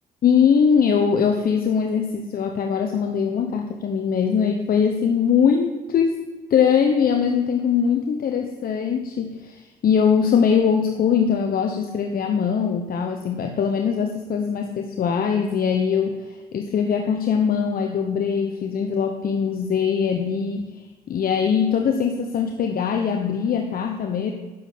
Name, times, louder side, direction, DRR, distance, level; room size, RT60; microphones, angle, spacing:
voice 1, 0.2-6.2 6.5-20.7 21.1-24.3, left 7 dB, 60° left, 4 dB, 1.0 m, -21 dB
9.5 x 7.4 x 6.6 m, 1.3 s
supercardioid pair, 65°, 17 cm